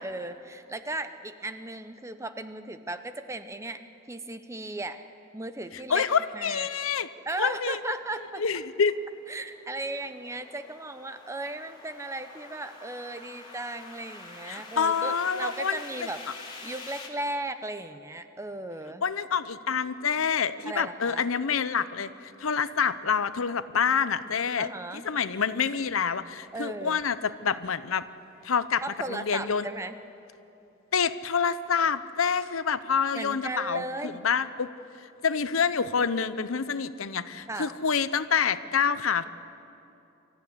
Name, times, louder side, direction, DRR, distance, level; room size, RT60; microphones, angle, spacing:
voice 1, 0.0-3.8 4.1-5.0 5.3-6.0 6.3-6.7 7.3-8.4 9.3-16.2 16.6-19.0 20.7-21.2 24.6-25.1 26.5-27.0 28.8-30.0 33.1-34.2 37.5-37.8, right 2 dB, 15° right, 10 dB, 0.8 m, -36 dB
voice 2, 5.9-7.1 7.4-7.9 8.4-9.0 14.5-15.8 19.0-22.1 22.4-28.0 28.4-28.8 29.1-29.7 30.9-34.7 35.2-39.3, left 6 dB, 80° left, 13 dB, 0.7 m, -27 dB
sound 1, 8.0-17.1, left 3 dB, 25° left, 2.7 m, -47 dB
24.0 x 14.5 x 9.8 m, 2.9 s
head